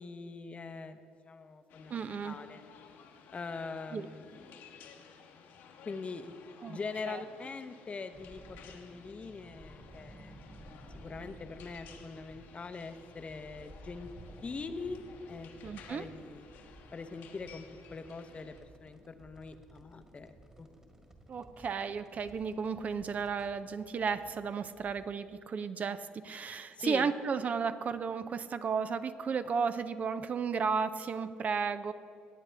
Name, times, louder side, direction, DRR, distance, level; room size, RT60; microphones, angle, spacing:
voice 1, 0.0-2.6 3.3-4.8 5.8-6.4 6.7-10.3 10.9-14.1 14.4-15.0 15.3-16.5 16.9-20.7 26.8-27.1, left 4 dB, 35° left, 10 dB, 0.8 m, -43 dB
sound 1, 1.7-18.6, left 6 dB, 75° left, 1.2 m, -56 dB
voice 2, 1.9-2.4 3.9-4.1 6.6-6.8 7.1-7.2 15.6-16.1 21.3-31.9, right 5 dB, 45° right, 12 dB, 0.5 m, -34 dB
sound 2, 8.1-25.1, right 1 dB, 15° right, 1.7 m, -55 dB
18.0 x 8.2 x 3.4 m, 2.5 s
supercardioid pair, 65°, 4 cm